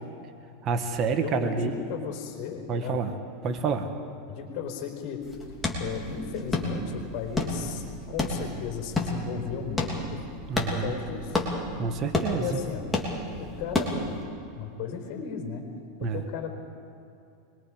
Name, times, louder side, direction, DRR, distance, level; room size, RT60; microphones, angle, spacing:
voice 1, 0.6-1.7 2.7-3.1 3.4-3.9 10.5-10.9 11.8-12.6 16.0-16.2, right 5 dB, 40° right, 6 dB, 1.6 m, -28 dB
voice 2, 1.2-3.0 4.3-5.2 5.8-10.2 10.7-11.4 12.3-13.0 13.4-14.2 14.5-15.7 16.0-16.5, left 6 dB, 55° left, 3 dB, 4.6 m, -35 dB
sound 1, 5.2-14.2, left 2 dB, 10° left, 3.2 m, -31 dB
25.0 x 22.0 x 5.1 m, 2.6 s
supercardioid pair, 125°, 0 cm